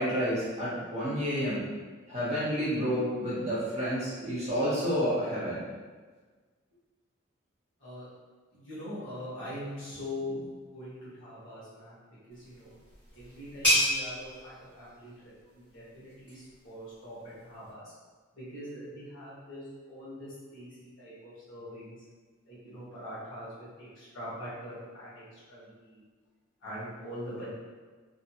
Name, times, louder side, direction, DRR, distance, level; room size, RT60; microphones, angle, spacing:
voice 1, 0.0-1.6 2.1-5.6, equal, 30° right, -10 dB, 1.0 m, -30 dB
voice 2, 8.5-12.7 13.1-17.8 18.3-22.0 22.5-26.0 26.6-27.5, left 1 dB, 70° left, -9 dB, 1.2 m, -43 dB
sound 1, 12.3-17.7, equal, 5° left, 1.3 m, -33 dB
2.6 x 2.3 x 2.9 m, 1.4 s
head